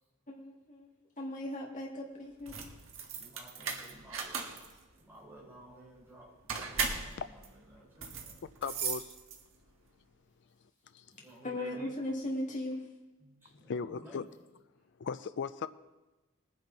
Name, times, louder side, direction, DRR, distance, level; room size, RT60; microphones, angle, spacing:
voice 1, 0.3-0.9 1.2-2.6 11.4-12.8, left 1 dB, 40° left, -2 dB, 2.1 m, -37 dB
sound 1, 2.3-9.7, right 5 dB, 70° right, 1.7 m, -38 dB
voice 2, 3.1-4.5 5.0-7.2 7.7-8.5 11.1-12.0 13.2-14.3, right 1 dB, 10° right, -6 dB, 4.4 m, -54 dB
voice 3, 8.6-9.2 10.9-11.1 13.5-14.3 15.0-15.7, left 5 dB, 60° left, 13 dB, 0.4 m, -37 dB
20.5 x 9.9 x 4.0 m, 1.1 s
head